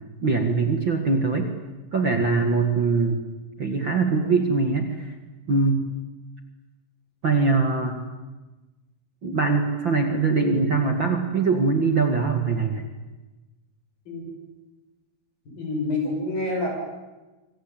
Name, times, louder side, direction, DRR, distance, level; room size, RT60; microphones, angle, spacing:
voice 1, 0.0-1.5 1.9-3.2 3.6-5.1 5.5-5.9 7.2-8.0 9.2-12.9, right 4 dB, 40° right, 4 dB, 2.2 m, -22 dB
voice 2, 15.6-16.7, left 2 dB, 65° left, 1 dB, 9.3 m, -27 dB
26.5 x 24.5 x 8.9 m, 1.2 s
omnidirectional pair, 4.3 m